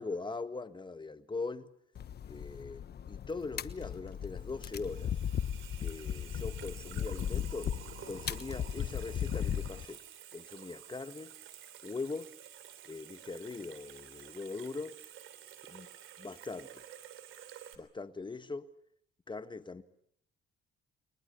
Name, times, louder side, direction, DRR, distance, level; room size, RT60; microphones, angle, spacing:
voice 1, 0.0-1.7 2.3-5.1 5.8-7.7 8.1-10.0 10.3-11.3 11.8-12.3 12.9-15.0 15.7-15.9 16.2-16.8 17.8-18.7 19.3-19.8, left 3 dB, 25° left, 1.6 m, -41 dB
sound 1, 2.0-9.9, left 9 dB, 55° left, 1.2 m, -37 dB
Water tap faucet / Sink (filling or washing), 4.1-17.8, right 10 dB, 85° right, 3.1 m, -51 dB
30.0 x 23.0 x 7.0 m
cardioid pair, 90°, 20 cm